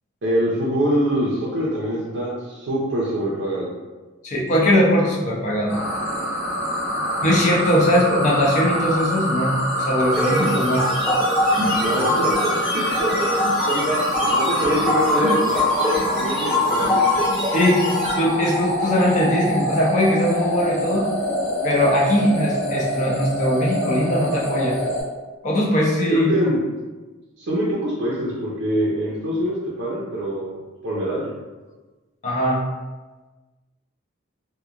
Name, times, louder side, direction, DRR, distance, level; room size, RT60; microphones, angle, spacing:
voice 1, 0.2-3.7 11.8-14.0 14.3-17.1 26.1-26.6 27.4-31.3, equal, 60° right, -6 dB, 0.5 m, -25 dB
voice 2, 4.2-5.7 7.2-10.9 17.5-17.9 18.2-21.1 21.6-24.8 25.4-26.3 32.2-32.6, equal, 35° left, -3 dB, 0.5 m, -20 dB
sound 1, 5.7-25.0, equal, 65° left, 1.1 m, -25 dB
sound 2, 10.1-18.1, left 1 dB, ahead, 0.7 m, -23 dB
2.9 x 2.2 x 2.4 m, 1.2 s
head